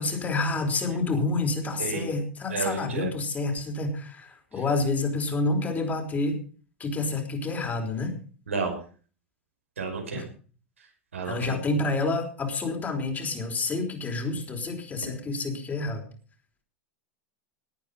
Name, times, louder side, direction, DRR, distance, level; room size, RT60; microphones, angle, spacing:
voice 1, 0.0-6.4 6.8-8.1 10.1-10.3 11.2-16.1, left 3 dB, 25° left, 3 dB, 4.7 m, -28 dB
voice 2, 1.8-2.1 2.5-3.1 8.5-8.7 9.8-10.2 11.1-11.6, right 4 dB, 80° right, 3 dB, 5.1 m, -31 dB
19.0 x 9.2 x 5.5 m, 0.40 s
figure-of-eight pair, 90°, 7 cm